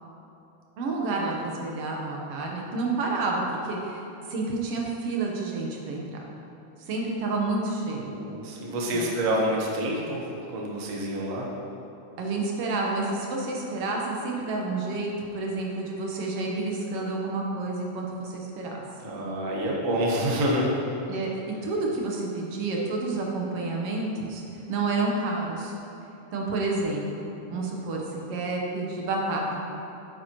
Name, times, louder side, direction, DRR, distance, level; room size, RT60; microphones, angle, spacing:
voice 1, 0.8-6.2 6.8-8.2 8.9-9.1 12.2-18.8 21.1-24.4 24.7-25.7 26.3-29.6, right 3 dB, 65° right, -1 dB, 1.7 m, -29 dB
voice 2, 8.1-11.5 19.0-20.7, equal, 85° right, -3 dB, 0.7 m, -27 dB
9.2 x 9.0 x 3.0 m, 3.0 s
omnidirectional pair, 3.4 m